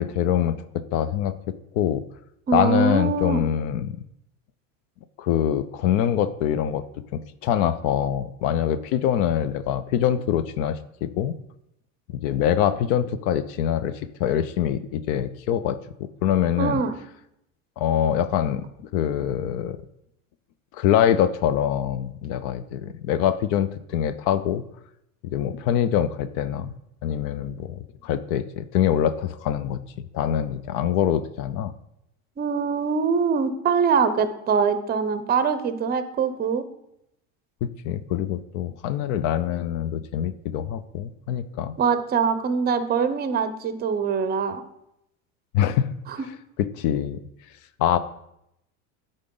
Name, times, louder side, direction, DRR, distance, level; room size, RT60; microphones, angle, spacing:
voice 1, 0.0-2.0 2.5-4.0 5.2-6.8 7.4-11.4 12.1-16.8 17.8-18.6 18.9-19.8 20.7-24.6 25.2-26.7 27.0-29.8 30.1-31.7 37.6-41.7 45.5-46.0 46.6-47.2 47.8-48.0, left 10 dB, 65° left, 13 dB, 0.5 m, -24 dB
voice 2, 2.5-3.4 16.6-16.9 32.4-36.6 41.8-44.6 46.1-46.2, right 6 dB, 25° right, 11 dB, 0.6 m, -23 dB
9.7 x 3.9 x 3.8 m, 0.81 s
supercardioid pair, 95°, 40 cm